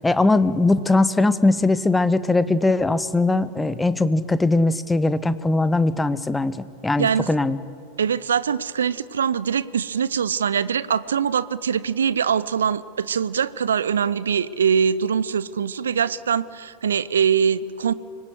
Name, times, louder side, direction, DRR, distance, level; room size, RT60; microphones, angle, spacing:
voice 1, 0.0-6.5 6.8-7.6, left 2 dB, 10° left, 14 dB, 1.0 m, -20 dB
voice 2, 7.0-7.3 8.0-17.9, right 7 dB, 65° right, 18 dB, 0.7 m, -23 dB
25.0 x 21.0 x 8.2 m, 2.5 s
figure-of-eight pair, 90°, 0 cm